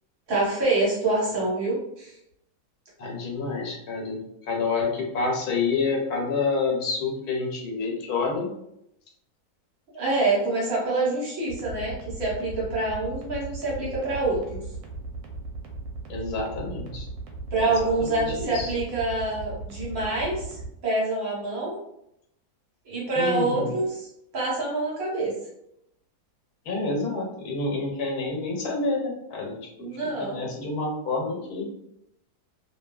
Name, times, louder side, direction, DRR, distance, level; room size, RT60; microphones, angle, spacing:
voice 1, 0.3-2.1 9.9-14.6 17.5-21.8 22.8-24.1 24.3-25.3 29.8-30.5, right 2 dB, 65° right, -5 dB, 1.5 m, -26 dB
voice 2, 3.0-8.5 16.1-17.1 17.6-17.7 18.0-18.7 23.1-23.7 26.7-29.6 30.2-31.6, left 3 dB, 80° left, 0 dB, 1.2 m, -28 dB
sound 1, 11.5-20.7, right 3 dB, 80° right, 1.1 m, -37 dB
2.6 x 2.6 x 2.3 m, 0.80 s
omnidirectional pair, 1.6 m